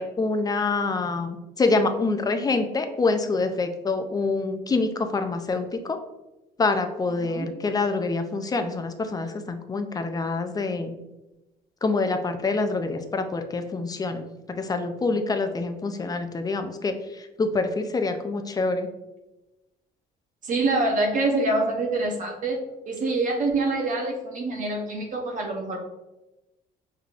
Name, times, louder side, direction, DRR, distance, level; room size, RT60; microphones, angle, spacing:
voice 1, 0.0-6.0 6.6-10.9 11.8-18.9, left 3 dB, 20° left, 7 dB, 0.4 m, -26 dB
voice 2, 20.4-25.8, right 2 dB, 50° right, 1 dB, 0.8 m, -26 dB
5.2 x 3.3 x 2.4 m, 1.0 s
cardioid pair, 110°, 17 cm